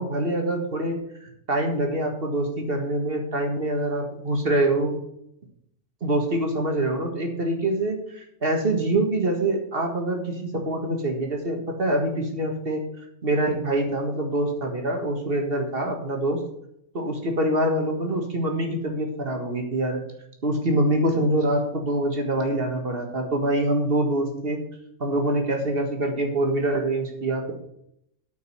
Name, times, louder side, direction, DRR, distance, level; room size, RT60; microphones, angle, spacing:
voice 1, 0.0-4.9 6.0-12.8 13.2-16.4 16.9-20.0 20.4-24.6 25.0-27.5, right 1 dB, 50° right, 3 dB, 2.0 m, -25 dB
9.1 x 5.4 x 7.8 m, 0.75 s
omnidirectional pair, 1.3 m